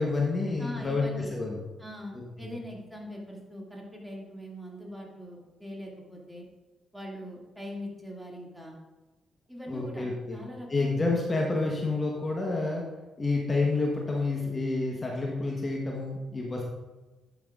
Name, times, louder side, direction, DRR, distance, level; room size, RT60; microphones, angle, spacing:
voice 1, 0.0-1.6 2.1-2.5 9.7-10.4 10.7-12.9 13.2-16.6, left 3 dB, 35° left, -1 dB, 1.3 m, -29 dB
voice 2, 0.6-1.3 1.8-6.4 6.9-8.8 9.5-11.1, equal, 5° right, -2 dB, 2.4 m, -42 dB
11.0 x 5.9 x 2.5 m, 1.2 s
hypercardioid pair, 45°, 0 cm